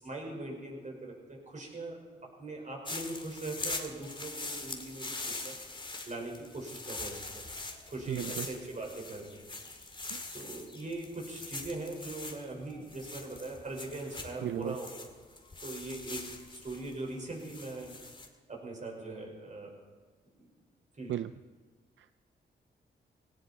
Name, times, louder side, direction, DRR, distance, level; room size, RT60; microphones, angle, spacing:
voice 1, 0.0-5.6 6.1-7.4 7.9-9.4 10.3-15.1 15.6-18.0 18.5-19.7 20.4-20.5 20.9-21.1, right 2 dB, 40° right, 0 dB, 5.3 m, -41 dB
sound 1, 2.9-18.3, left 3 dB, 25° left, 2.0 m, -43 dB
voice 2, 8.1-8.5 10.1-10.2 14.4-14.8 21.1-21.3 22.0-22.2, right 11 dB, 80° right, 13 dB, 0.4 m, -35 dB
18.5 x 17.5 x 4.4 m, 1.5 s
cardioid pair, 85°, 20 cm